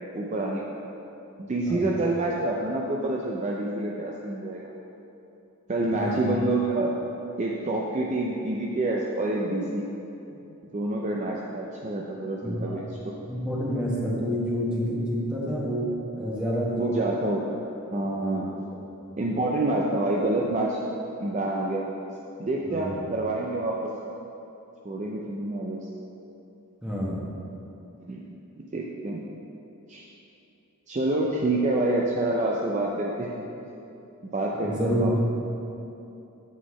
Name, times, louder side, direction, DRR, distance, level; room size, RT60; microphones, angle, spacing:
voice 1, 0.1-0.7 1.4-4.7 5.7-6.9 7.4-9.9 10.7-13.1 16.8-17.6 17.9-18.5 19.2-20.8 21.2-21.9 22.4-23.9 24.8-25.8 28.1-28.2 28.7-29.2 29.9-30.0 30.9-33.4 34.3-35.1, right 2 dB, 30° right, -2 dB, 0.4 m, -27 dB
voice 2, 1.7-2.0 6.0-6.3 12.4-12.8 13.3-15.9 16.2-16.9 18.0-18.4 18.7-18.8 22.7-23.0 26.8-27.2 34.6-35.2, equal, 5° right, -6 dB, 1.1 m, -28 dB
8.2 x 4.0 x 4.8 m, 2.9 s
head